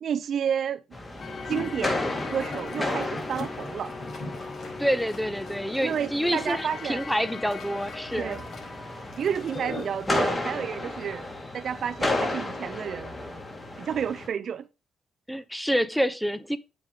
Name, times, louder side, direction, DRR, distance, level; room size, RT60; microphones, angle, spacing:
voice 1, 0.0-0.8 1.5-3.9 5.8-7.0 8.2-8.4 9.2-13.2 13.8-14.7, right 8 dB, 60° right, 0.5 m, -31 dB
sound 1, 0.9-14.3, left 2 dB, 20° left, 3.2 m, -33 dB
sound 2, 1.2-10.1, left 2 dB, 55° left, 5.3 m, -42 dB
sound 3, 1.2-10.0, left 4 dB, 35° left, 1.1 m, -41 dB
voice 2, 4.8-8.4 15.3-16.6, equal, ahead, 0.8 m, -27 dB
8.8 x 5.3 x 5.0 m
cardioid pair, 90°, 0 cm